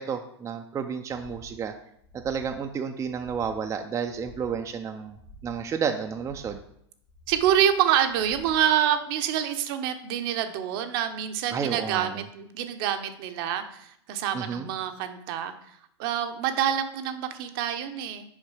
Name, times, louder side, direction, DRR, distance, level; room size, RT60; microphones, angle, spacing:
voice 1, 0.0-1.7 2.1-5.2 5.4-6.6 11.5-12.2 14.3-14.7, right 6 dB, 20° right, 5 dB, 0.5 m, -31 dB
sound 1, 1.1-1.6 2.0-2.6 3.0-3.6 4.0-4.6 5.0-5.6 6.0-6.6 7.0-7.6 8.0-8.6, equal, 45° left, 2.0 m, -49 dB
voice 2, 7.3-15.5 16.0-18.2, right 10 dB, 50° right, 8 dB, 0.8 m, -26 dB
6.5 x 5.1 x 4.8 m, 0.71 s
hypercardioid pair, 100°, 15 cm